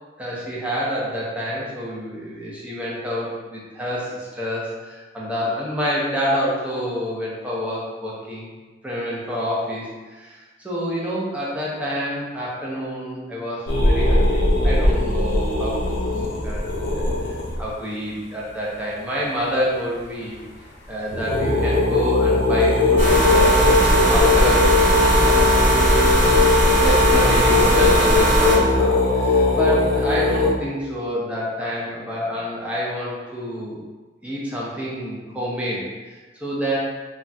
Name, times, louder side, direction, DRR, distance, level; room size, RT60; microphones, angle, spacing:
voice 1, 0.2-8.5 8.8-20.4 20.9-24.7 25.2-25.7 26.8-33.8 34.2-36.8, equal, 5° right, -7 dB, 0.7 m, -28 dB
sound 1, 13.7-17.6 20.3-20.5 20.8-20.9 21.1-30.5, left 2 dB, 50° left, 0.6 m, -20 dB
sound 2, 23.0-28.6, right 1 dB, 45° right, 1.0 m, -18 dB
2.3 x 2.3 x 3.9 m, 1.3 s
head